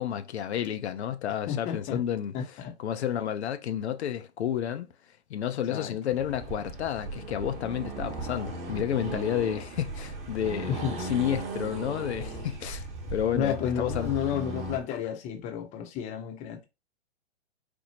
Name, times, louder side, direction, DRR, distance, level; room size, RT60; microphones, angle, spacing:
voice 1, 0.0-2.3 2.8-4.9 5.3-10.7 11.0-12.9 13.1-14.1, left 10 dB, 75° left, 0.6 m, -30 dB
voice 2, 1.5-2.0 2.3-2.7 5.7-6.0 10.7-11.0 13.3-16.7, left 8 dB, 20° left, 0.6 m, -31 dB
Accelerating revving vroom, 6.1-14.8, right 2 dB, 20° right, 0.9 m, -37 dB
4.3 x 2.0 x 2.8 m
hypercardioid pair, 125°, 34 cm